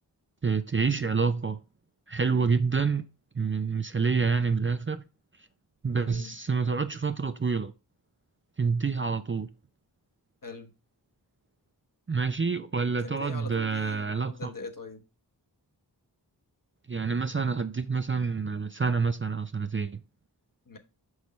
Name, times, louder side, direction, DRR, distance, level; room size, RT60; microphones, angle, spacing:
voice 1, 0.4-1.6 2.1-3.1 3.4-5.0 5.8-7.7 8.6-9.5 12.1-14.5 16.9-20.0, right 5 dB, 30° right, 0.5 m, -27 dB
voice 2, 5.9-6.3 10.4-10.7 13.0-15.0 20.7-20.8, left 3 dB, 50° left, 1.2 m, -42 dB
6.3 x 5.2 x 3.1 m
wide cardioid pair, 45°, 42 cm